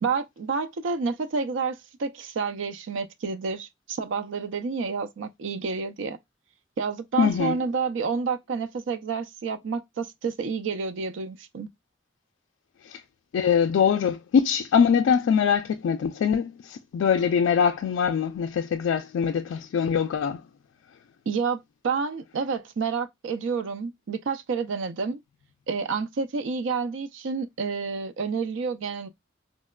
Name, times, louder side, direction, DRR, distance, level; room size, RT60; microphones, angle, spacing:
voice 1, 0.0-6.2 6.8-11.7 21.3-25.2 25.7-29.1, right 5 dB, 75° right, 0.4 m, -29 dB
voice 2, 7.2-7.6 12.8-13.0 13.3-20.4, left 7 dB, 85° left, 0.3 m, -23 dB
4.0 x 2.1 x 2.2 m
head